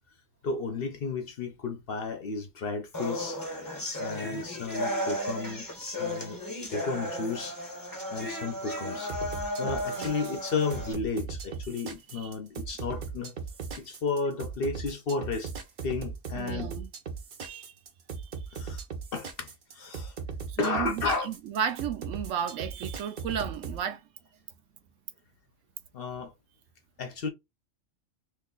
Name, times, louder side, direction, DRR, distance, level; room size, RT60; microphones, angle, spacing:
voice 1, 0.4-3.4 4.0-5.7 6.0-6.4 6.7-7.6 8.1-13.4 13.8-15.5 15.8-16.7 18.5-18.8 19.1-20.1 20.6-21.3 25.9-26.3 27.0-27.3, left 4 dB, 55° left, 0.8 m, -33 dB
sound 1, 2.9-10.9, equal, 20° left, 0.8 m, -34 dB
sound 2, 9.1-23.8, right 5 dB, 50° right, 0.7 m, -38 dB
voice 2, 16.4-16.9 17.4-17.7 18.2-18.6 20.5-24.0, right 8 dB, 75° right, 0.9 m, -34 dB
2.9 x 2.2 x 3.8 m
omnidirectional pair, 1.3 m